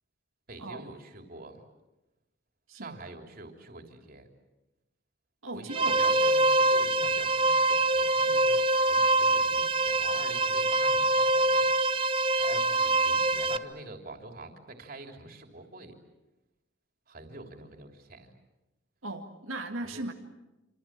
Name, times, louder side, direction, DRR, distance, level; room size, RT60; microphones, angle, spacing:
voice 1, 0.5-1.6 2.7-4.3 5.5-12.0 12.3-15.9 17.1-18.3 19.8-20.0, right 2 dB, 45° right, 4 dB, 3.4 m, -46 dB
voice 2, 5.4-6.2 19.0-20.1, right 2 dB, 90° right, 2 dB, 2.1 m, -37 dB
sound 1, 5.7-13.6, right 2 dB, 25° right, 0.9 m, -24 dB
27.5 x 27.0 x 7.6 m, 1.0 s
head